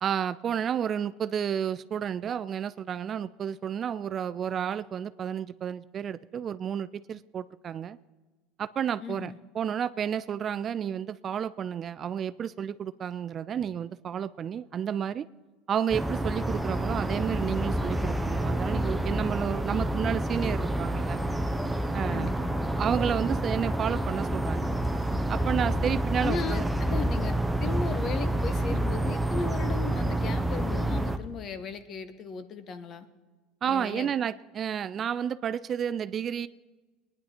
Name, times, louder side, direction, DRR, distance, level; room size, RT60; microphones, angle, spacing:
voice 1, 0.0-8.0 8.6-15.3 15.7-21.2 21.9-22.3 22.8-24.7 25.3-26.6 33.6-36.5, right 8 dB, 35° right, 14 dB, 0.3 m, -31 dB
voice 2, 9.0-9.4 22.1-22.5 26.2-27.3 27.6-33.1 33.6-34.1, left 5 dB, 40° left, 11 dB, 1.1 m, -36 dB
sound 1, 15.9-31.2, right 1 dB, 5° right, 0.7 m, -28 dB
20.5 x 10.0 x 4.4 m, 1.3 s
supercardioid pair, 120°, 0 cm